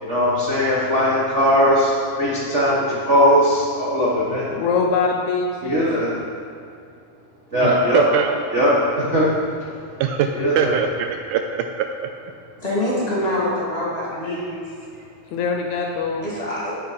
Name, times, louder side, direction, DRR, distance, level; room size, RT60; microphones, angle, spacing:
voice 1, 0.0-1.9 2.2-4.5 5.6-6.1 7.5-8.0 8.5-9.3 10.4-10.7, equal, 50° right, -8 dB, 0.8 m, -19 dB
voice 2, 4.5-5.9 15.3-16.3, left 5 dB, 75° left, 2 dB, 1.8 m, -23 dB
voice 3, 7.6-8.4 10.0-10.3 10.6-11.9, right 8 dB, 80° right, 5 dB, 1.9 m, -22 dB
voice 4, 12.6-14.6 14.9-15.0 16.2-16.7, left 1 dB, 25° left, -6 dB, 1.7 m, -25 dB
8.7 x 7.8 x 5.7 m, 2.3 s
omnidirectional pair, 3.8 m